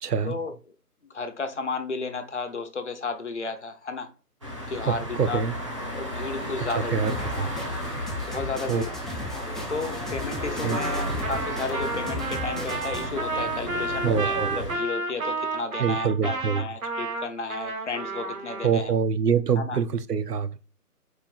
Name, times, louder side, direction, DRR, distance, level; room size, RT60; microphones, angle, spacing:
voice 1, 0.0-0.4 4.8-5.5 6.6-7.5 8.6-8.8 10.6-10.8 14.0-14.7 15.8-16.6 18.6-20.6, right 6 dB, 85° right, 0.6 m, -25 dB
voice 2, 1.1-4.1 4.7-5.4 5.9-7.5 8.2-8.9 9.7-19.0 19.6-19.8, left 4 dB, 50° left, 0.7 m, -33 dB
sound 1, 4.4-14.7, equal, 20° right, 0.7 m, -34 dB
sound 2, 7.1-13.1, left 1 dB, ahead, 0.4 m, -37 dB
Trumpet, 10.7-18.7, right 3 dB, 60° right, 1.1 m, -31 dB
4.5 x 2.7 x 4.2 m
figure-of-eight pair, 155°, 47 cm